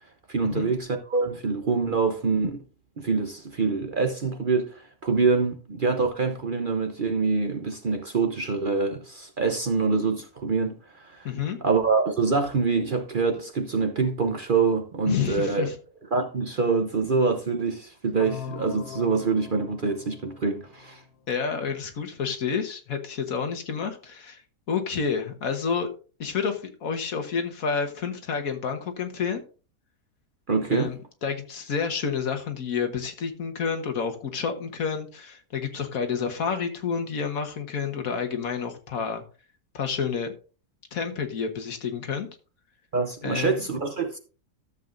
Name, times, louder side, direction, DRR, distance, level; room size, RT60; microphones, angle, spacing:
voice 1, 0.3-2.6 3.0-11.3 11.6-15.7 16.1-21.0 30.5-30.9 42.9-44.2, right 4 dB, 45° right, 0.8 m, -25 dB
voice 2, 11.2-11.6 15.1-15.7 21.3-24.4 24.7-25.9 26.2-29.4 30.7-39.2 39.7-40.3 40.9-42.3 43.2-43.6, left 6 dB, 70° left, 1.7 m, -29 dB
sound 1, 18.2-21.2, left 9 dB, 85° left, 1.3 m, -41 dB
13.5 x 7.5 x 2.5 m
omnidirectional pair, 1.5 m